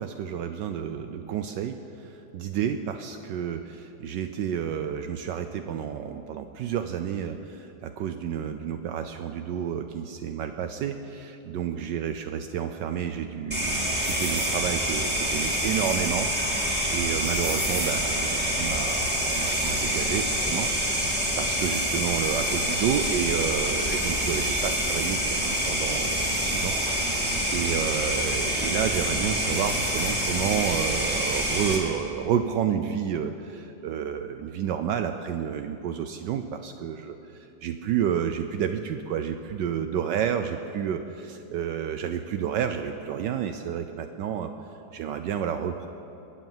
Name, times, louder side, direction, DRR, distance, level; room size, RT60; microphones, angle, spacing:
voice 1, 0.0-26.7 27.5-44.5 44.9-45.9, right 8 dB, 75° right, 7 dB, 1.2 m, -30 dB
sound 1, 13.5-31.8, equal, 5° right, 2.5 m, -26 dB
22.5 x 8.3 x 7.3 m, 2.9 s
omnidirectional pair, 2.1 m